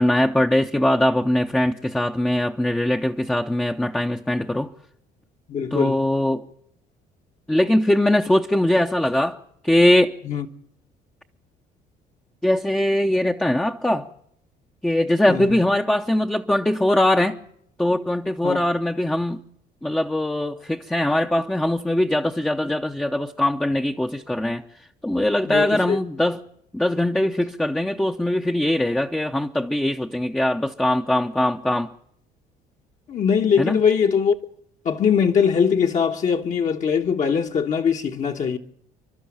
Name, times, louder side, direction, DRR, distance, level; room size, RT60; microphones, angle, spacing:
voice 1, 0.0-4.7 5.7-6.5 7.5-9.4 9.6-10.1 12.4-14.1 14.8-17.4 17.8-19.4 19.8-24.6 25.0-26.4 26.7-31.9 33.6-33.8, left 1 dB, 5° left, 0.8 m, -21 dB
voice 2, 5.5-6.0 10.2-10.5 15.3-15.6 18.4-18.6 25.5-26.0 33.1-34.3 34.8-38.6, left 7 dB, 45° left, 1.3 m, -21 dB
29.0 x 12.0 x 8.7 m
cardioid pair, 110°, 17 cm